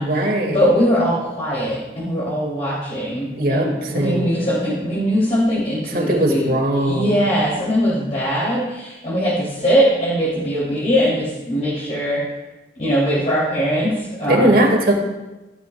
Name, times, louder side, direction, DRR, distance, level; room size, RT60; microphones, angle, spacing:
voice 1, 0.0-0.6 3.4-4.3 5.9-7.2 14.2-14.9, right 1 dB, 55° right, 1 dB, 2.1 m, -19 dB
voice 2, 0.5-12.2 12.8-13.9 14.2-14.5, equal, 40° left, -9 dB, 3.0 m, -21 dB
16.0 x 12.0 x 2.3 m, 1.1 s
head